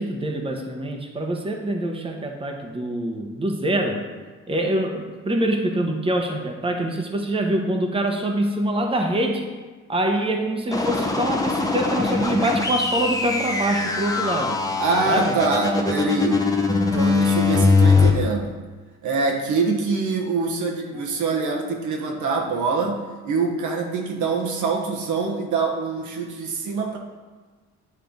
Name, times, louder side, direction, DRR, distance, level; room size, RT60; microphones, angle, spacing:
voice 1, 0.0-4.1 4.5-9.5 9.9-14.6 15.0-15.4 20.9-21.0, right 1 dB, 20° right, 2 dB, 1.0 m, -25 dB
sound 1, 10.7-18.1, left 4 dB, 10° left, 0.9 m, -21 dB
voice 2, 14.8-16.5 16.9-18.5 19.0-27.0, right 4 dB, 75° right, 1 dB, 1.2 m, -24 dB
9.5 x 3.3 x 5.2 m, 1.3 s
cardioid pair, 90°, 30 cm